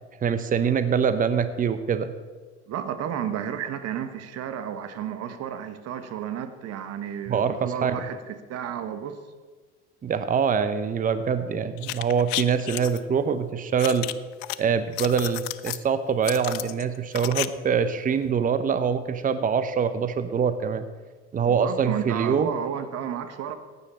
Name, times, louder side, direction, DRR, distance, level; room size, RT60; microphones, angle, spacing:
voice 1, 0.2-2.1 7.3-8.1 10.0-14.1 14.6-20.9 21.3-22.5, right 6 dB, 25° right, 11 dB, 0.9 m, -24 dB
voice 2, 2.7-9.2 21.4-23.6, right 9 dB, 45° right, 9 dB, 1.3 m, -32 dB
sound 1, 11.8-13.0 13.8-14.6 14.9-15.8 16.2-17.5 17.7-17.8, left 19 dB, 60° left, 0.6 m, -32 dB
15.0 x 9.8 x 4.4 m, 1.4 s
hypercardioid pair, 70°, 36 cm